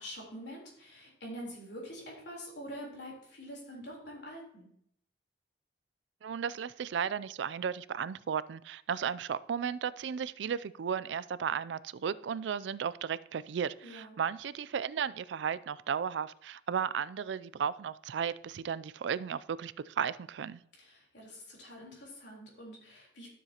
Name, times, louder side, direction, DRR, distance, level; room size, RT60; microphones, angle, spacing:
voice 1, 0.0-4.7 13.8-14.2 20.7-23.3, equal, 70° left, -2 dB, 3.7 m, -46 dB
voice 2, 6.2-20.6, right 7 dB, 80° right, 18 dB, 0.4 m, -34 dB
12.5 x 7.2 x 2.9 m, 0.67 s
head